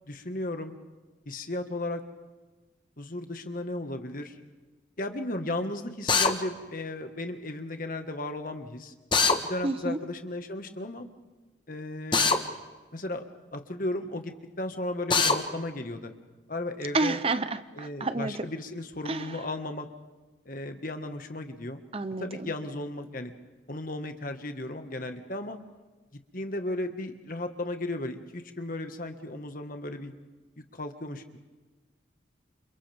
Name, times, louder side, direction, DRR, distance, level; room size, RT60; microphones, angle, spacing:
voice 1, 0.1-0.7 1.2-2.0 3.0-4.4 5.0-8.9 9.4-11.1 11.7-12.4 12.9-13.2 13.5-16.1 16.5-17.2 17.7-19.9 20.4-21.8 22.2-23.3 23.7-25.6 26.3-30.1 30.7-31.4, left 1 dB, 45° left, 6 dB, 1.7 m, -35 dB
Drill, 6.1-6.3 9.1-9.4 12.1-12.4 15.1-15.4, left 4 dB, 25° left, 1.3 m, -22 dB
voice 2, 9.6-10.0 16.9-18.5 19.0-19.4 21.9-22.5, right 3 dB, 30° right, 12 dB, 0.7 m, -30 dB
29.5 x 27.5 x 3.6 m, 1.3 s
head